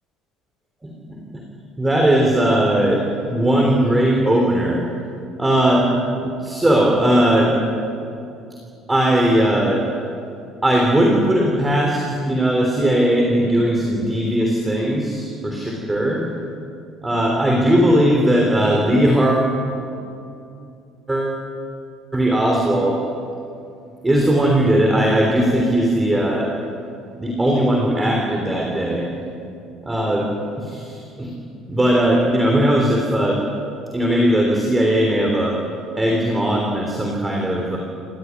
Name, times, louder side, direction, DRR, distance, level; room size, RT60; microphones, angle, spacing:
voice 1, 0.8-1.4 1.8-4.8 5.4-5.9 6.2-7.5 8.9-9.8 10.6-16.3 17.0-19.5 21.1-21.4 22.1-23.0 24.0-26.5 27.2-29.1 29.8-30.3 30.6-31.3 31.7-33.4 33.9-35.6 36.0-37.8, right 1 dB, 10° right, -1 dB, 3.4 m, -18 dB
28.0 x 16.0 x 9.5 m, 2.6 s
cardioid pair, 145°, 0 cm